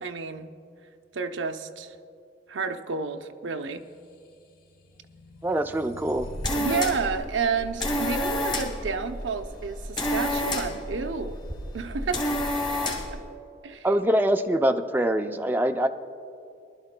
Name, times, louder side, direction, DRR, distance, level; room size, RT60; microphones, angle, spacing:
voice 1, 0.0-0.5 1.1-2.0 2.5-3.9 6.6-11.4 11.7-12.3 12.9-13.2 13.6-13.9, right 5 dB, 90° right, 6 dB, 0.7 m, -30 dB
sound 1, 4.0-6.9, left 1 dB, 55° left, 1.0 m, -47 dB
voice 2, 5.4-6.3 13.8-15.9, right 1 dB, 10° right, 5 dB, 0.4 m, -24 dB
sound 2, 6.1-13.2, left 1 dB, 25° left, 2.1 m, -30 dB
23.5 x 12.5 x 2.2 m, 2.5 s
head